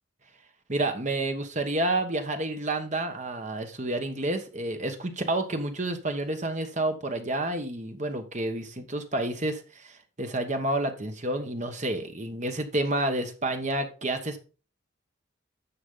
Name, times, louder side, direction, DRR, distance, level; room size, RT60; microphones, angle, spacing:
voice 1, 0.7-14.4, right 2 dB, 35° right, 7 dB, 1.2 m, -29 dB
9.9 x 6.2 x 3.9 m, 0.35 s
head